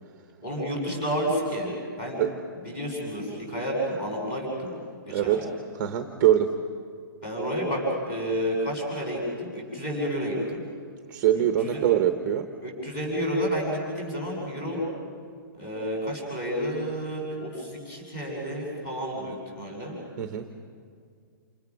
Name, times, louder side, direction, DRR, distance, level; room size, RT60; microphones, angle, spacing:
voice 1, 0.4-1.7 2.0-2.2 2.6-4.7 5.1-5.4 7.2-10.6 11.6-11.8 12.6-14.8 15.6-20.0, equal, 20° left, -2 dB, 7.3 m, -30 dB
voice 2, 5.1-5.4 5.7-6.5 11.1-12.5 20.2-20.5, right 11 dB, 15° right, 7 dB, 0.9 m, -23 dB
29.0 x 27.5 x 6.3 m, 2.2 s
hypercardioid pair, 175°, 11 cm